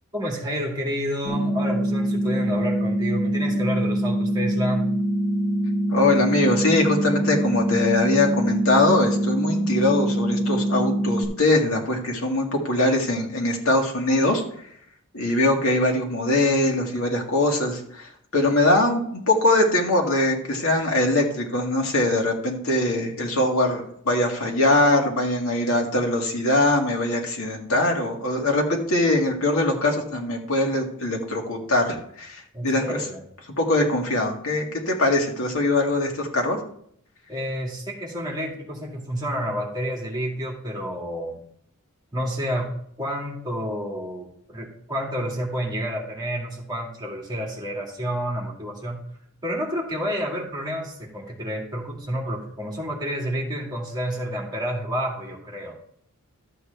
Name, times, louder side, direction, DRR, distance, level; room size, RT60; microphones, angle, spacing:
voice 1, 0.1-4.9 32.5-33.2 37.3-41.4 42.1-49.0 49.4-55.8, equal, 20° right, -2 dB, 2.2 m, -29 dB
sound 1, 1.2-11.2, right 1 dB, 35° left, 3.0 m, -24 dB
voice 2, 5.9-14.4 15.1-33.0 33.6-36.6, left 2 dB, 70° left, 1 dB, 2.0 m, -22 dB
12.5 x 7.9 x 3.4 m, 0.66 s
head